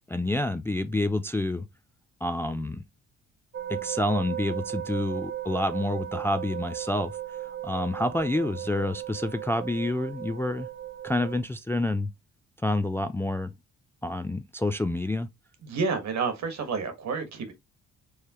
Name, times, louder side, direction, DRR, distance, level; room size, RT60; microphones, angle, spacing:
voice 1, 0.1-1.7 2.2-2.8 3.7-7.1 7.4-10.7 11.0-12.1 12.6-13.5 14.0-15.3, left 1 dB, 10° left, 0.3 m, -28 dB
sound 1, 3.5-11.4, right 12 dB, 40° right, 0.7 m, -36 dB
voice 2, 15.6-17.5, right 5 dB, 65° right, 1.5 m, -29 dB
4.7 x 3.3 x 2.9 m
cardioid pair, 90°, 30 cm